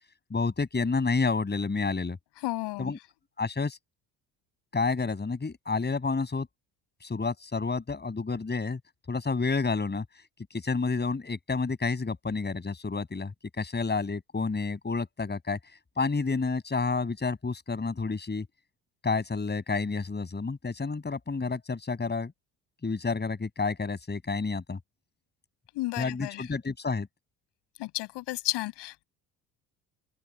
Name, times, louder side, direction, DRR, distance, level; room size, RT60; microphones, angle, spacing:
voice 1, 0.3-2.2 2.8-3.0 3.4-3.8 4.7-6.5 7.0-8.8 9.1-10.0 10.5-13.3 13.6-15.6 16.0-18.5 19.0-22.3 22.8-24.8 26.0-27.1, left 4 dB, 25° left, 7.1 m, -29 dB
voice 2, 2.4-2.9 25.7-26.4 27.8-29.0, left 19 dB, 70° left, 7.8 m, -32 dB
hypercardioid pair, 65°, 42 cm